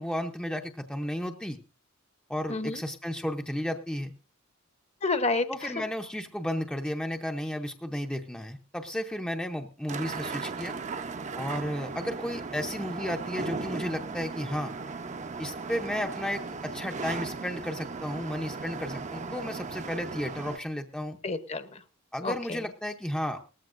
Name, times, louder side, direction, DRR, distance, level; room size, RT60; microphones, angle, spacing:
voice 1, 0.0-1.6 2.3-4.1 5.5-10.7 11.4-14.7 15.4-21.2 22.1-23.4, equal, 5° left, 4 dB, 0.6 m, -33 dB
voice 2, 2.5-2.8 5.0-5.7 21.2-21.8 22.2-22.6, left 3 dB, 30° left, 11 dB, 0.9 m, -30 dB
sound 1, 9.9-20.6, right 4 dB, 35° right, 0.6 m, -37 dB
19.0 x 14.0 x 2.5 m, 0.33 s
head